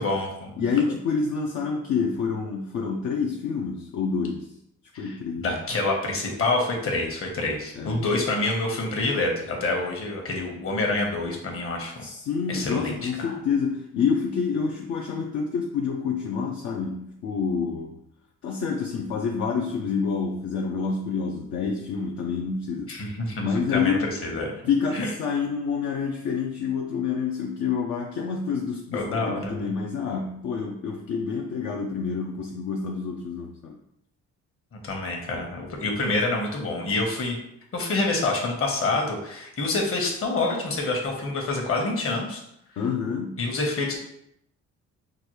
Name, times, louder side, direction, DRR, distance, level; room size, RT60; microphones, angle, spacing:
voice 1, 0.0-0.5 4.9-12.0 12.5-13.3 22.9-24.5 24.9-25.1 28.9-29.7 34.7-37.4 37.7-42.4 43.4-44.0, left 2 dB, 45° left, 0 dB, 1.1 m, -27 dB
voice 2, 0.6-4.5 5.0-5.6 7.8-8.0 10.5-10.6 12.0-18.0 18.4-23.0 23.4-24.1 24.7-33.8 42.8-43.5, left 5 dB, 65° left, 0 dB, 0.6 m, -28 dB
5.1 x 2.3 x 3.1 m, 0.77 s
cardioid pair, 90°, 30 cm